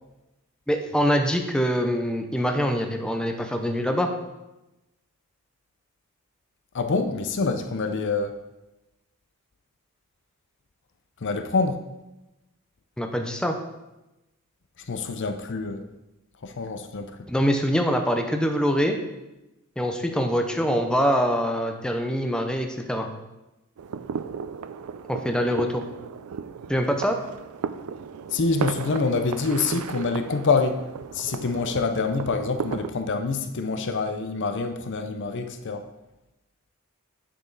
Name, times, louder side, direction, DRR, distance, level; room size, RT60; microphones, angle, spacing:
voice 1, 0.7-4.1 13.0-13.6 17.3-19.0 19.8-23.1 25.1-25.8 26.7-27.2, equal, 5° left, 4 dB, 0.7 m, -24 dB
voice 2, 6.7-8.4 11.2-11.8 14.9-15.8 16.4-17.2 28.3-30.8 31.1-35.9, left 4 dB, 55° left, 8 dB, 0.6 m, -26 dB
sound 1, 23.8-32.9, right 6 dB, 85° right, 0.4 m, -35 dB
9.0 x 6.1 x 4.0 m, 0.98 s
head